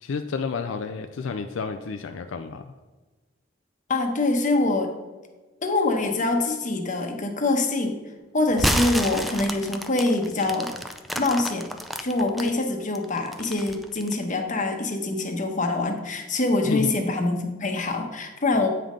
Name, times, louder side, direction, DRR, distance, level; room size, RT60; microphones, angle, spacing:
voice 1, 0.0-2.7 16.7-17.0, left 5 dB, 75° left, 6 dB, 0.4 m, -30 dB
voice 2, 3.9-4.9 5.6-8.0 8.3-10.7 11.1-11.7 12.0-18.7, left 2 dB, 40° left, 4 dB, 1.0 m, -24 dB
sound 1, 8.5-12.5 12.9-14.2, equal, ahead, 0.4 m, -29 dB
8.6 x 5.5 x 3.7 m, 1.2 s
head